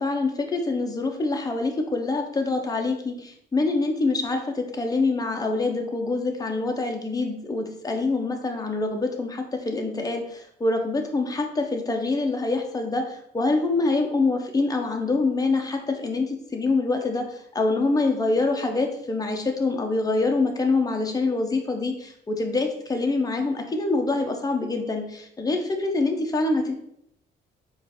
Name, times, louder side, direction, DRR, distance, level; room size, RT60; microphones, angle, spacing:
voice 1, 0.0-26.7, left 3 dB, 20° left, 3 dB, 0.7 m, -25 dB
4.5 x 2.5 x 3.5 m, 0.73 s
cardioid pair, 90°, 20 cm